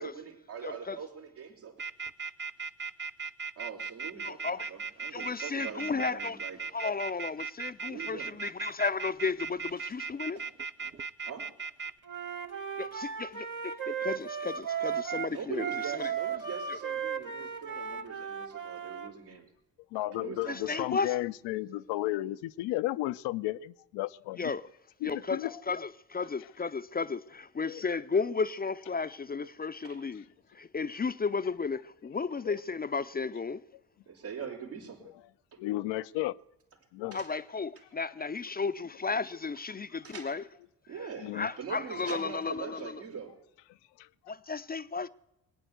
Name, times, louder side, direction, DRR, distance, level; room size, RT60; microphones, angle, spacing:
voice 1, 0.0-1.8 3.6-6.6 7.9-8.3 10.4-10.5 11.3-11.4 15.3-19.5 20.2-20.9 29.8-30.0 34.1-35.1 35.5-35.6 37.1-37.3 40.0-40.3 40.9-43.3, right 7 dB, 90° right, 3.6 m, -42 dB
voice 2, 0.6-1.0 4.2-4.7 5.1-6.4 6.7-10.4 12.8-16.1 16.7-16.8 20.5-21.2 24.3-24.7 25.0-30.3 30.5-33.6 37.1-40.4 41.3-43.0 44.3-45.1, left 4 dB, 20° left, 0.5 m, -34 dB
sound 1, 1.8-11.9, right 4 dB, 25° right, 0.7 m, -37 dB
Wind instrument woodwind instrument, 12.0-19.1, right 7 dB, 45° right, 1.5 m, -35 dB
voice 3, 19.9-24.5 25.0-25.5 27.7-27.8 32.4-32.6 35.6-36.4 36.9-37.2 41.2-41.5 44.0-44.1, left 16 dB, 75° left, 0.6 m, -33 dB
19.5 x 9.1 x 7.9 m
hypercardioid pair, 50°, 43 cm